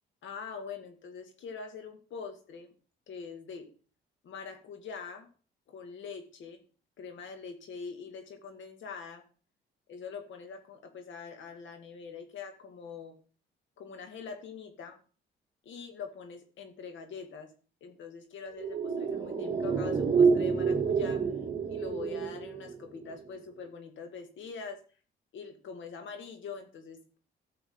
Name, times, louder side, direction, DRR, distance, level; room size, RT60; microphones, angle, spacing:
voice 1, 0.2-2.7 3.1-3.7 4.2-5.3 5.7-6.6 7.0-9.2 9.9-13.2 13.8-15.0 15.6-17.5 17.8-21.3 21.7-24.8 25.3-27.2, left 5 dB, 75° left, 6 dB, 2.2 m, -43 dB
sound 1, 18.5-23.1 23.4-23.5, right 5 dB, 55° right, 3.2 m, -28 dB
13.5 x 6.9 x 3.9 m, 0.39 s
cardioid pair, 90°, 20 cm